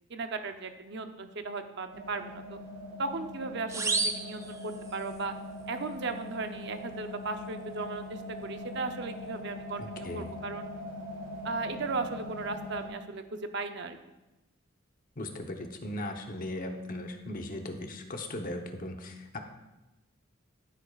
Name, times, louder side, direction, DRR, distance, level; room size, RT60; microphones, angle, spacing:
voice 1, 0.1-2.6 3.0-5.3 5.7-10.7 11.4-14.0, right 3 dB, 55° right, 7 dB, 0.7 m, -36 dB
sound 1, 1.9-12.9, left 1 dB, 90° right, 3.6 m, -42 dB
sound 2, 3.7-5.2, right 3 dB, 15° right, 0.5 m, -32 dB
voice 2, 9.8-10.3 15.2-19.4, left 1 dB, 40° left, 4 dB, 1.0 m, -38 dB
14.5 x 8.6 x 2.4 m, 1.0 s
head